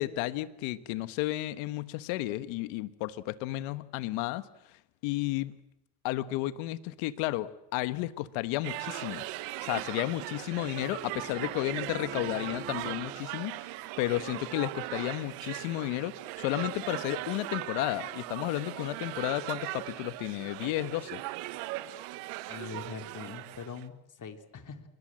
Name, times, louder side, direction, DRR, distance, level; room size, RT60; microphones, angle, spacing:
voice 1, 0.0-4.4 5.0-5.5 6.0-9.3 9.6-13.7 14.0-21.2, left 17 dB, 80° left, 14 dB, 1.4 m, -32 dB
sound 1, 8.6-23.8, right 17 dB, 85° right, 1.6 m, -39 dB
Bowed string instrument, 9.4-13.3, right 3 dB, 25° right, 1.7 m, -47 dB
voice 2, 22.5-24.8, left 6 dB, 40° left, 7 dB, 3.7 m, -42 dB
28.5 x 22.5 x 7.6 m, 0.85 s
supercardioid pair, 80°, 47 cm